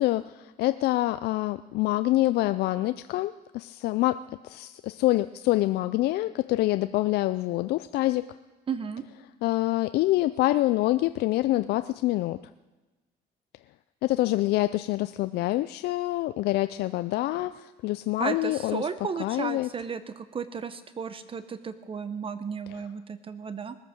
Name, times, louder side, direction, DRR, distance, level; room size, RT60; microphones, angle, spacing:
voice 1, 0.0-8.3 9.4-12.4 14.0-18.9 19.2-19.7, left 17 dB, 75° left, 12 dB, 0.4 m, -26 dB
voice 2, 8.7-9.0 18.2-23.8, right 6 dB, 30° right, 12 dB, 0.8 m, -34 dB
20.0 x 8.9 x 6.4 m, 1.2 s
cardioid pair, 110°, 17 cm